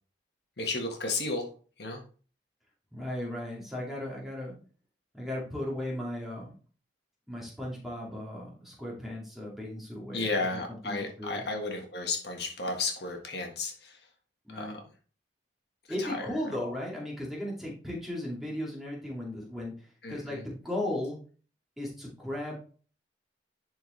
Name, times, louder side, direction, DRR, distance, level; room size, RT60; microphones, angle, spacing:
voice 1, 0.6-1.5 1.8-2.0 10.1-13.9 14.6-14.7 16.0-16.1 20.0-20.2, left 3 dB, 60° left, 2 dB, 1.6 m, -33 dB
voice 2, 2.9-4.6 5.1-6.5 7.3-11.5 14.4-14.8 15.9-21.2 21.8-22.6, left 1 dB, ahead, -4 dB, 2.4 m, -36 dB
11.0 x 4.5 x 3.3 m, 0.40 s
head